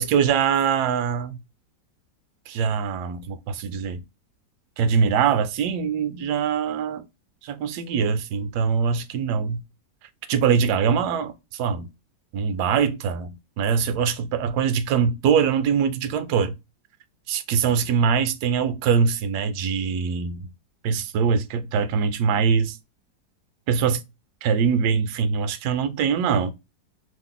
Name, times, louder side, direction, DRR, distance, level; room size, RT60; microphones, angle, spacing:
voice 1, 0.0-1.4 2.5-4.0 4.8-7.0 7.4-9.6 10.3-11.9 12.3-16.5 17.3-20.5 20.8-22.8 23.7-24.0 24.4-26.5, right 6 dB, 75° right, 1.1 m, -23 dB
3.0 x 2.1 x 3.7 m
omnidirectional pair, 1.9 m